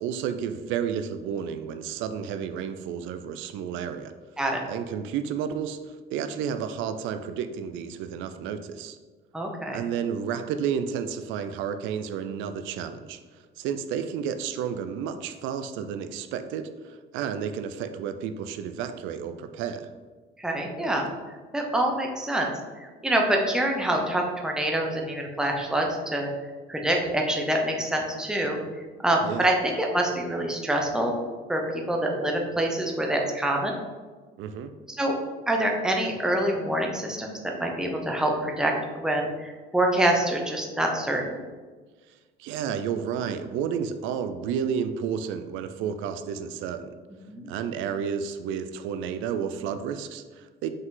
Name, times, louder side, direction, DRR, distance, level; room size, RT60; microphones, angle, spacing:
voice 1, 0.0-4.1 4.7-9.0 9.7-19.9 29.2-29.5 34.4-34.7 42.4-46.9 47.5-50.7, right 7 dB, 85° right, 10 dB, 0.5 m, -31 dB
voice 2, 9.3-9.8 20.4-21.1 21.5-22.5 22.8-26.3 26.7-28.6 29.0-31.1 31.5-33.8 35.0-35.1 35.5-41.4 47.3-47.5, right 1 dB, 5° right, 1 dB, 0.8 m, -26 dB
5.7 x 5.3 x 3.8 m, 1.4 s
cardioid pair, 155°, 19 cm